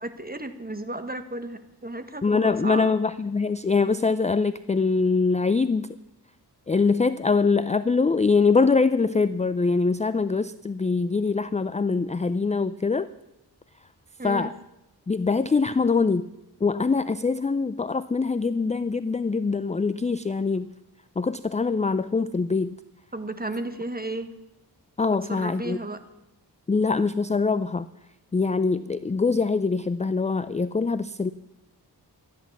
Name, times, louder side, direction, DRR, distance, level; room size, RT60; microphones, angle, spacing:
voice 1, 0.0-2.9 14.2-14.5 23.1-24.3 25.1-26.0, right 2 dB, 20° right, 9 dB, 1.4 m, -33 dB
voice 2, 2.2-5.9 6.7-13.1 14.2-14.5 15.1-16.3 16.6-20.7 21.2-22.8 25.0-25.8 26.7-27.9 28.3-31.3, left 4 dB, 15° left, 14 dB, 0.4 m, -23 dB
13.5 x 10.5 x 7.2 m, 0.94 s
cardioid pair, 60°, 42 cm